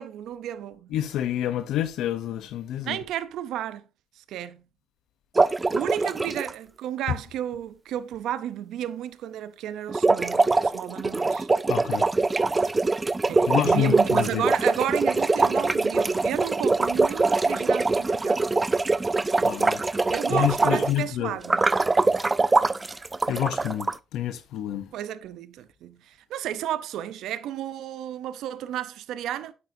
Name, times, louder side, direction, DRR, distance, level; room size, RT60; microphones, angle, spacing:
voice 1, 0.0-1.1 2.8-3.8 4.2-4.6 5.7-11.5 13.3-18.5 20.1-21.7 24.9-29.5, right 11 dB, 85° right, 0.6 m, -33 dB
voice 2, 0.9-3.0 11.7-12.1 13.5-14.5 19.4-19.8 20.3-21.3 23.3-24.9, left 11 dB, 85° left, 0.7 m, -28 dB
sound 1, 5.4-6.5 9.9-21.0 21.4-23.9, right 3 dB, 25° right, 0.3 m, -23 dB
8.7 x 8.3 x 2.6 m
cardioid pair, 90°, 0 cm